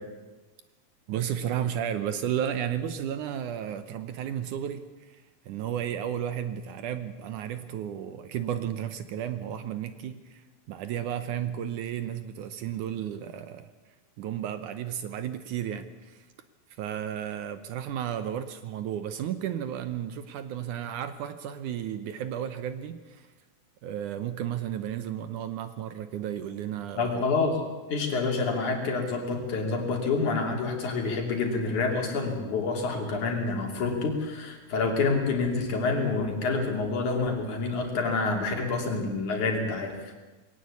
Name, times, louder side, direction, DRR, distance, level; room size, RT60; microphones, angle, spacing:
voice 1, 1.1-10.4 10.7-13.7 14.2-16.3 16.8-23.3 23.8-27.2 28.4-28.5 29.9-30.0, right 10 dB, 75° right, 11 dB, 2.0 m, -33 dB
voice 2, 27.0-27.6 27.9-40.0, left 3 dB, 55° left, 2 dB, 4.1 m, -27 dB
21.0 x 17.5 x 8.4 m, 1.2 s
omnidirectional pair, 4.3 m